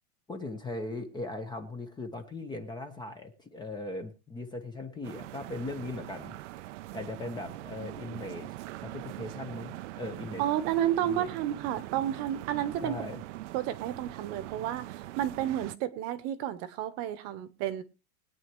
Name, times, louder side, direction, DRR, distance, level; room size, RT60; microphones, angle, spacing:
voice 1, 0.3-6.3 6.9-8.5 8.8-10.4 11.0-11.3 12.8-13.2, left 2 dB, 10° left, 1.0 m, -39 dB
sound 1, 5.0-15.8, right 16 dB, 55° right, 0.7 m, -42 dB
voice 2, 10.4-12.9 13.5-17.8, right 11 dB, 35° right, 1.2 m, -31 dB
21.0 x 9.3 x 3.1 m
supercardioid pair, 155°, 44 cm